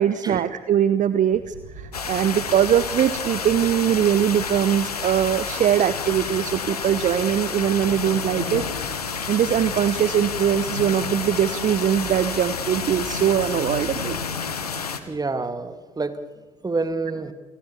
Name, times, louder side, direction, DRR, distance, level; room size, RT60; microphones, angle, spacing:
voice 1, 0.0-8.6 9.3-14.2, right 9 dB, 40° right, 15 dB, 0.9 m, -21 dB
sound 1, 1.3-14.2, right 2 dB, 75° right, 7.6 m, -42 dB
sound 2, 1.9-15.0, left 6 dB, 85° left, 1.4 m, -30 dB
voice 2, 15.1-16.2 16.6-17.3, right 3 dB, 20° right, 11 dB, 2.2 m, -27 dB
28.5 x 20.5 x 7.3 m, 1.3 s
figure-of-eight pair, 55°, 19 cm